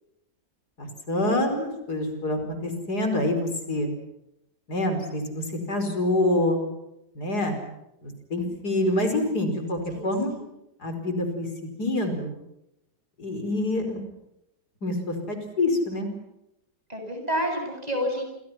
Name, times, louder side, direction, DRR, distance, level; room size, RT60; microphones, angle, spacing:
voice 1, 0.8-3.9 4.7-6.6 7.2-7.6 8.0-10.3 10.8-12.3 13.2-14.0 14.8-16.1, left 1 dB, 65° left, 6 dB, 5.6 m, -26 dB
voice 2, 9.9-10.5 16.9-18.3, equal, 20° right, 3 dB, 8.3 m, -29 dB
29.0 x 27.5 x 5.9 m, 0.84 s
omnidirectional pair, 1.8 m